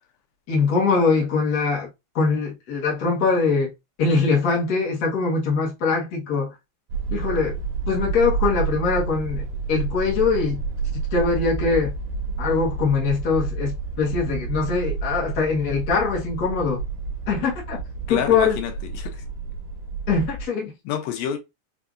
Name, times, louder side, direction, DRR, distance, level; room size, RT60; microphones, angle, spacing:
voice 1, 0.5-1.9 2.1-3.7 4.0-6.5 7.1-7.6 7.9-10.6 11.1-11.9 12.4-16.8 17.3-17.8 18.1-18.6 20.1-20.7, left 4 dB, 65° left, 0.9 m, -22 dB
sound 1, 6.9-20.5, right 4 dB, 60° right, 1.9 m, -29 dB
voice 2, 18.1-19.2 20.9-21.4, left 9 dB, 85° left, 2.5 m, -28 dB
5.6 x 2.6 x 2.4 m
omnidirectional pair, 4.0 m